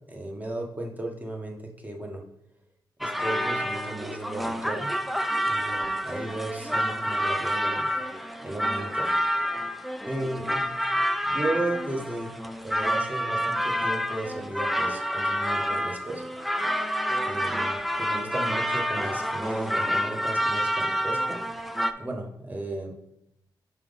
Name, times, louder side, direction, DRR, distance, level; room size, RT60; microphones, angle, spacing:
voice 1, 0.1-2.2 3.0-4.9 5.4-7.9 8.4-9.1 10.1-10.6 11.2-12.3 12.6-16.2 17.2-21.4 22.0-23.0, right 2 dB, 20° right, 2 dB, 1.2 m, -35 dB
sound 1, 3.0-21.9, equal, ahead, 0.4 m, -28 dB
5.7 x 4.9 x 4.0 m, 0.78 s
cardioid pair, 90°, 8 cm